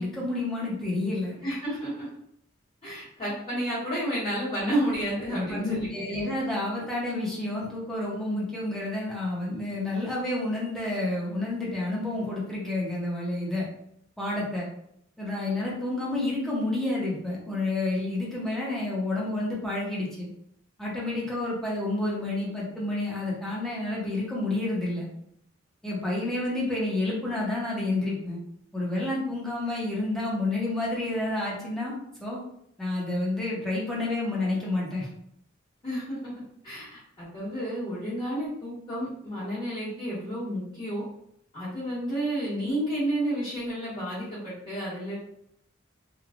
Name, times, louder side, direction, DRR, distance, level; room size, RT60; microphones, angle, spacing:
voice 1, 0.0-1.4 5.3-13.6 14.2-14.7 15.2-20.3 20.8-25.1 25.8-28.4 28.7-32.4 32.8-35.1, left 2 dB, ahead, -6 dB, 0.8 m, -29 dB
voice 2, 1.4-2.1 2.8-6.1 35.8-36.3 36.6-41.0 41.5-45.1, equal, 30° left, -13 dB, 1.2 m, -31 dB
3.1 x 2.3 x 2.5 m, 0.73 s
head